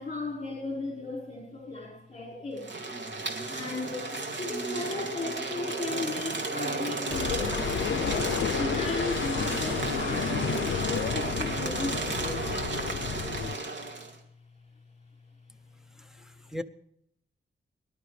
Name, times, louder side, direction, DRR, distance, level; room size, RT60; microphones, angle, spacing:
voice 1, 0.0-2.7 3.5-10.8 11.1-12.5, left 3 dB, 35° left, 5.0 m, -36 dB
sound 1, 2.6-14.1, right 3 dB, 60° right, 2.5 m, -33 dB
sound 2, 7.1-13.6, left 8 dB, 75° left, 0.5 m, -32 dB
voice 2, 16.0-16.6, left 1 dB, ahead, 0.7 m, -39 dB
23.5 x 11.5 x 3.3 m
wide cardioid pair, 110°, 20 cm